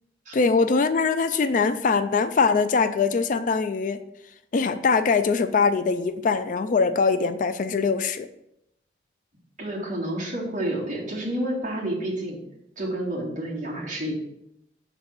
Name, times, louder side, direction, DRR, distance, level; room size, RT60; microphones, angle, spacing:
voice 1, 0.3-4.0 4.5-8.3, left 4 dB, 45° left, 10 dB, 0.4 m, -22 dB
voice 2, 9.6-12.4 12.8-14.1, right 1 dB, 45° right, -5 dB, 2.2 m, -29 dB
5.6 x 4.0 x 5.9 m, 0.79 s
head